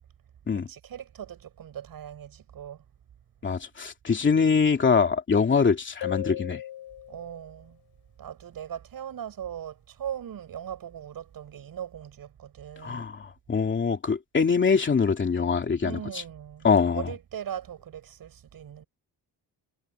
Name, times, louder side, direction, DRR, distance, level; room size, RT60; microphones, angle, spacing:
voice 1, 0.5-2.8 7.1-7.8 8.2-13.1 15.8-16.7 16.9-18.8, right 9 dB, 55° right, 6.5 m, -39 dB
voice 2, 3.4-6.6 12.8-16.0 16.6-17.1, left 5 dB, 30° left, 2.6 m, -23 dB
sound 1, 6.0-7.5, left 12 dB, 75° left, 3.2 m, -36 dB
wide cardioid pair, 175°, 40 cm